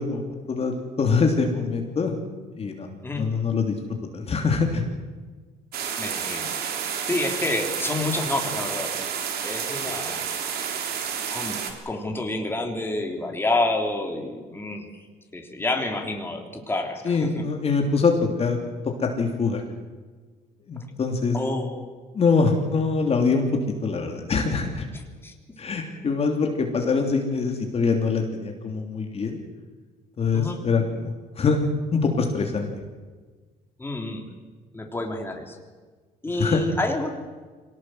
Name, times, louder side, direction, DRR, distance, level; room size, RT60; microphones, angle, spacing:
voice 1, 0.0-2.1 2.6-2.9 3.2-3.7 4.1-4.8 17.0-18.1 18.4-18.6 19.0-19.6 20.7-21.4 22.1-23.5 23.8-24.9 25.6-29.4 30.2-32.7 36.4-36.6, left 4 dB, 35° left, 3 dB, 3.1 m, -24 dB
sound 1, 5.7-11.7, right 7 dB, 70° right, 3.5 m, -30 dB
voice 2, 6.0-6.6 7.1-8.9 9.4-10.2 11.3-11.6 11.9-14.9 15.3-17.3 21.3-21.8 24.9-25.3 30.3-30.6 33.8-34.2 34.7-35.6 36.2-37.1, left 2 dB, 15° left, 2 dB, 3.5 m, -28 dB
23.5 x 18.5 x 7.9 m, 1.4 s
cardioid pair, 110°, 17 cm